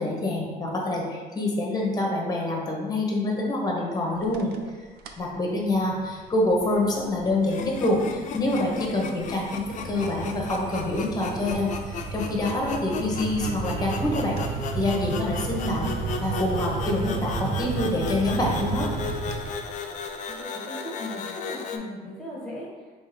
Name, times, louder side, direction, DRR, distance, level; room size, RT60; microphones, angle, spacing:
voice 1, 0.0-4.5 5.2-14.4 14.7-18.9, left 2 dB, 25° left, -1 dB, 0.8 m, -26 dB
sound 1, 4.2-4.7 5.0-5.3 5.8-20.1, right 5 dB, 70° right, 0.4 m, -34 dB
sound 2, 7.4-21.8, left 5 dB, 45° left, 0.4 m, -36 dB
voice 2, 20.4-22.7, left 1 dB, 5° left, -6 dB, 1.4 m, -37 dB
3.6 x 2.8 x 3.1 m, 1.4 s
cardioid pair, 110°, 17 cm